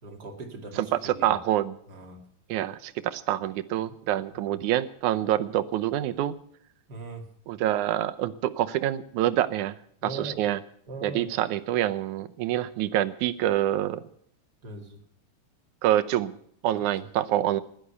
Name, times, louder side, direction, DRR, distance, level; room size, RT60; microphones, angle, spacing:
voice 1, 0.0-1.4 1.9-2.3 4.3-4.6 6.9-7.3 10.0-10.4 10.9-11.3 14.6-15.0 16.9-17.0, right 3 dB, 35° right, 2 dB, 2.6 m, -40 dB
voice 2, 1.0-1.8 2.5-6.4 7.5-9.7 10.1-10.6 11.0-14.0 15.8-16.3 16.6-17.6, right 13 dB, 90° right, 12 dB, 2.3 m, -26 dB
16.0 x 11.5 x 6.8 m, 0.66 s
omnidirectional pair, 3.4 m